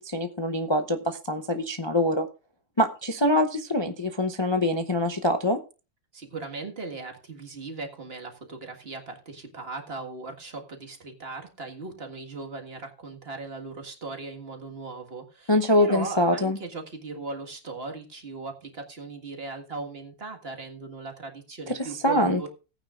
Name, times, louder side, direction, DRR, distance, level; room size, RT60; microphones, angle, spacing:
voice 1, 0.0-2.3 2.8-5.6 15.5-16.6 21.7-21.8 22.0-22.5, left 1 dB, 40° left, 5 dB, 0.3 m, -24 dB
voice 2, 6.1-22.5, right 3 dB, 35° right, 3 dB, 1.9 m, -38 dB
17.5 x 9.2 x 2.4 m, 0.32 s
omnidirectional pair, 1.9 m